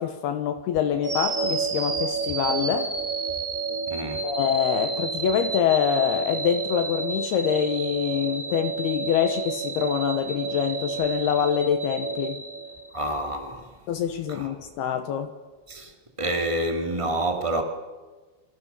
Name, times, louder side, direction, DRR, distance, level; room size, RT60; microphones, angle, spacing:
voice 1, 0.0-2.9 4.2-12.4 13.9-15.3, left 9 dB, 70° left, 2.9 m, -25 dB
sound 1, 1.0-13.2, right 5 dB, 55° right, 0.9 m, -30 dB
voice 2, 3.9-4.3 12.9-13.8 14.3-14.5 15.7-17.6, right 1 dB, 10° right, 1.4 m, -28 dB
29.0 x 24.0 x 7.0 m
omnidirectional pair, 5.2 m